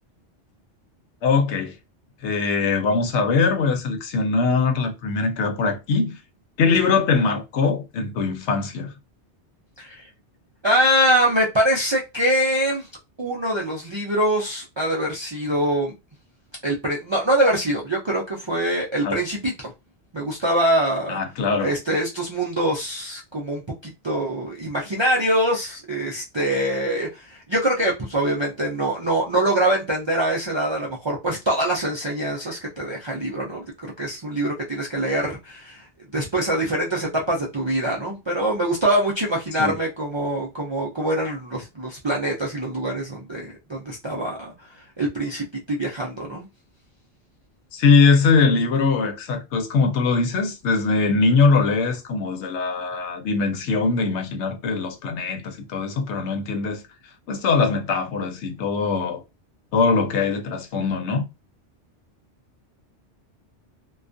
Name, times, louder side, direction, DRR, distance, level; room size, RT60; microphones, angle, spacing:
voice 1, 1.2-1.8 2.2-6.2 6.6-8.9 19.0-19.2 21.1-21.8 39.6-39.7 47.7-56.8 57.3-59.2 59.7-61.2, left 4 dB, 75° left, 0.9 m, -21 dB
voice 2, 9.8-10.1 10.6-12.9 13.2-15.9 16.6-19.7 20.1-21.2 21.6-23.6 24.0-33.6 34.0-35.9 36.1-44.5 45.0-46.5, right 1 dB, 50° right, 0.3 m, -24 dB
2.3 x 2.3 x 2.4 m
omnidirectional pair, 1.2 m